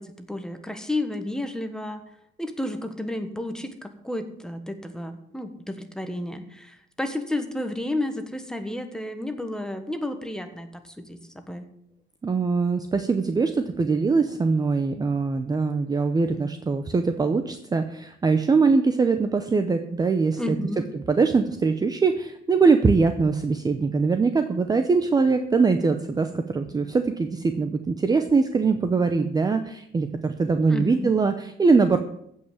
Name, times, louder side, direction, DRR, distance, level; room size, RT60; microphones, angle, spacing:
voice 1, 0.0-2.0 2.4-11.7 20.4-20.9 30.7-31.2, left 1 dB, 5° left, 7 dB, 1.2 m, -32 dB
voice 2, 12.2-20.6 20.9-32.0, right 4 dB, 20° right, 8 dB, 0.7 m, -22 dB
15.0 x 5.6 x 8.3 m, 0.72 s
cardioid pair, 160°, 20 cm